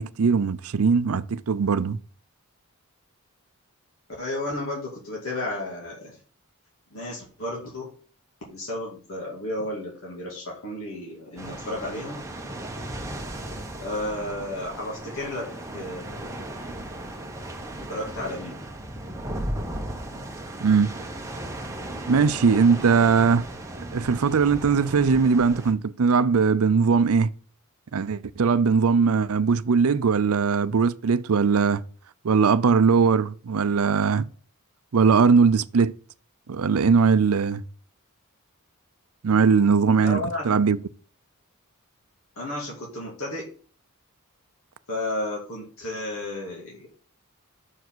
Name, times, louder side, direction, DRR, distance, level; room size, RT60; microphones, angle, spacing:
voice 1, 0.0-2.0 20.6-20.9 22.1-23.4 23.9-27.3 27.9-31.8 32.2-34.2 34.9-35.9 36.5-37.6 39.2-40.8, right 5 dB, 75° right, 0.5 m, -20 dB
voice 2, 4.2-6.2 6.9-7.9 8.5-12.2 13.8-15.5 15.7-16.5 17.9-18.5 40.0-40.6 42.4-43.5 44.9-46.9, left 1 dB, 65° left, 2.5 m, -32 dB
sound 1, 11.4-25.7, right 1 dB, 15° right, 1.1 m, -36 dB
6.5 x 4.7 x 6.2 m
head